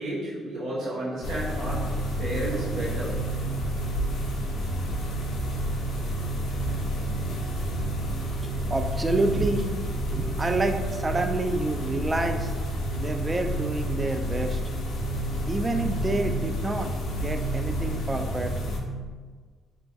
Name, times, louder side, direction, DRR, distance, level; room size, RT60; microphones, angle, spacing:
voice 1, 0.0-3.4, right 1 dB, 85° right, -7 dB, 0.9 m, -32 dB
sound 1, 1.2-18.8, right 1 dB, 75° left, 0.7 m, -29 dB
voice 2, 6.8-7.3 7.7-8.0 8.3-9.7 9.9-12.5 13.0-14.6 15.5-18.5, right 2 dB, 25° right, 6 dB, 0.3 m, -29 dB
3.3 x 2.2 x 4.1 m, 1.5 s
cardioid pair, 90°, 0 cm